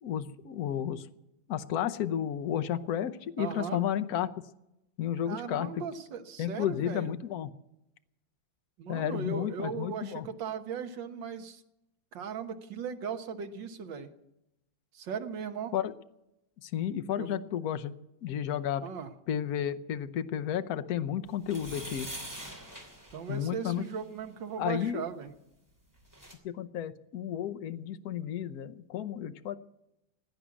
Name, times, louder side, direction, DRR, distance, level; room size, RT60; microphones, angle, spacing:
voice 1, 0.0-1.1 1.5-4.3 5.0-5.8 6.4-7.5 8.9-10.3 15.7-15.9 16.6-17.9 18.2-18.8 19.3-22.1 23.3-23.8 24.6-25.0 26.4-29.6, left 10 dB, 60° left, 11 dB, 1.1 m, -32 dB
voice 2, 3.4-3.8 5.3-7.2 8.8-11.6 12.1-14.1 14.9-15.7 17.2-17.3 18.8-19.1 23.1-25.3, right 6 dB, 70° right, 7 dB, 1.9 m, -38 dB
sound 1, 21.4-24.0 25.7-25.8 26.0-26.3, right 1 dB, 10° right, 2.7 m, -44 dB
16.5 x 10.0 x 8.3 m, 0.88 s
omnidirectional pair, 2.2 m